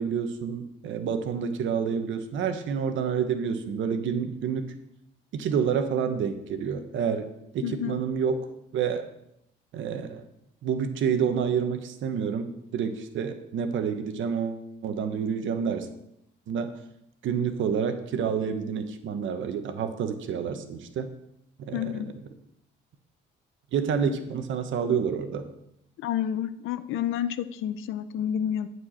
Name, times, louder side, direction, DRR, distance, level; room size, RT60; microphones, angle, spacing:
voice 1, 0.0-4.6 5.3-7.3 7.5-8.5 8.7-9.1 9.7-10.2 10.6-15.9 16.5-16.7 17.2-21.1 21.6-22.0 23.7-25.4, right 7 dB, 75° right, 8 dB, 1.1 m, -28 dB
voice 2, 7.6-8.0 21.7-22.1 26.0-28.7, left 10 dB, 85° left, 13 dB, 0.6 m, -29 dB
11.5 x 4.7 x 6.4 m, 0.79 s
cardioid pair, 90°, 20 cm